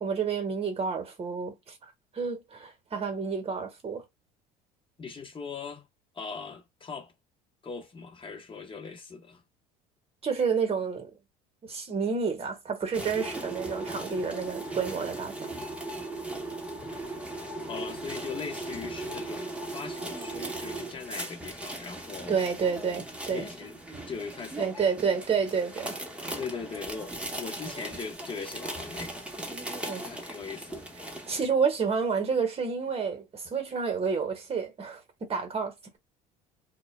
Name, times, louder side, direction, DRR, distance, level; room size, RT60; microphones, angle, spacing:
voice 1, 0.0-4.0 10.2-11.1 11.6-15.5 22.3-23.5 24.6-25.9 29.9-30.1 31.3-36.0, right 5 dB, 30° right, 1.1 m, -30 dB
voice 2, 5.0-5.8 6.1-7.1 7.6-9.4 17.7-22.4 23.3-23.8 24.1-24.7 26.4-29.3 29.7-30.9, left 5 dB, 25° left, 1.0 m, -40 dB
sound 1, 12.9-31.4, right 2 dB, 5° right, 0.9 m, -38 dB
2.2 x 2.1 x 3.0 m
hypercardioid pair, 75°, 19 cm